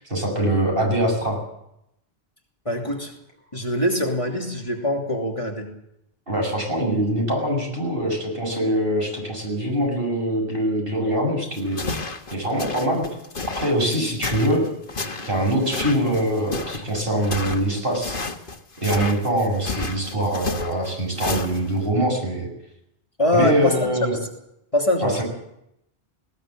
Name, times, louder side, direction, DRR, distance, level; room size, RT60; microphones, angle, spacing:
voice 1, 0.0-1.4 6.3-11.8 12.3-13.1 13.6-14.6 15.3-18.2 18.8-22.5 23.3-24.1 25.0-25.2, right 1 dB, 60° right, 1 dB, 7.4 m, -23 dB
voice 2, 2.6-3.1 3.5-5.7 23.2-24.3 24.7-25.2, left 1 dB, 30° left, 0 dB, 3.1 m, -23 dB
sound 1, 11.5-21.9, left 3 dB, 55° left, 1.7 m, -32 dB
20.0 x 19.0 x 7.7 m, 0.81 s
omnidirectional pair, 1.1 m